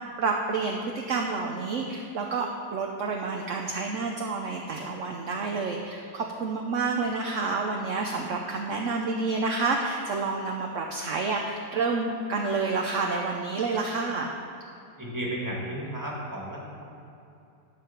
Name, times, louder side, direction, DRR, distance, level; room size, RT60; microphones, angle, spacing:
voice 1, 0.2-14.3, right 4 dB, 60° right, 1 dB, 1.0 m, -29 dB
voice 2, 15.0-16.9, right 1 dB, 10° right, -4 dB, 2.0 m, -34 dB
11.5 x 5.2 x 7.2 m, 2.7 s
omnidirectional pair, 1.7 m